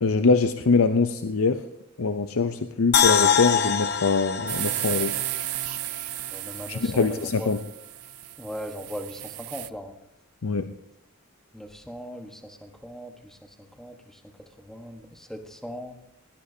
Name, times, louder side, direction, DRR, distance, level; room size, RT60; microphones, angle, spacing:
voice 1, 0.0-1.6 2.0-5.1 6.7-7.6 10.4-10.7, left 4 dB, 75° left, 9 dB, 0.6 m, -23 dB
sound 1, 2.9-6.1 6.5-6.6, left 7 dB, 50° left, 0.9 m, -24 dB
sound 2, 4.5-9.7, right 17 dB, 85° right, 0.4 m, -34 dB
voice 2, 6.3-7.5 8.4-9.9 11.5-14.2 14.6-16.0, equal, ahead, 4 dB, 1.2 m, -39 dB
20.0 x 17.5 x 2.8 m, 0.78 s
head